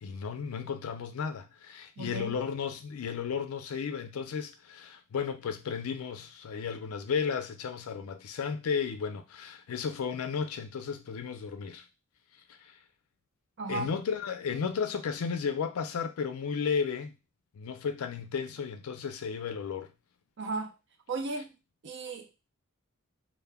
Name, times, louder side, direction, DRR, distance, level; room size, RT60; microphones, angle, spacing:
voice 1, 0.0-11.8 12.6-12.7 13.7-17.1 17.5-19.9, left 6 dB, 80° left, 0.4 m, -34 dB
voice 2, 2.0-2.4 13.6-13.9 20.4-20.7 21.1-21.6 21.8-22.5, right 3 dB, 55° right, 0.5 m, -35 dB
2.1 x 2.1 x 3.3 m
head